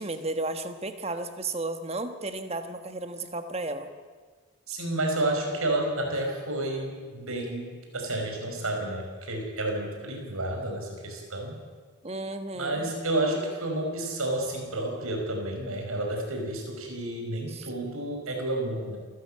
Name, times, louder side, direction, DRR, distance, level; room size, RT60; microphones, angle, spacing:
voice 1, 0.0-3.9 12.0-12.9 17.5-17.7, right 2 dB, 30° right, 8 dB, 1.4 m, -33 dB
voice 2, 4.7-11.6 12.6-19.0, right 1 dB, 85° right, 2 dB, 5.4 m, -30 dB
28.0 x 14.0 x 8.7 m, 1.5 s
head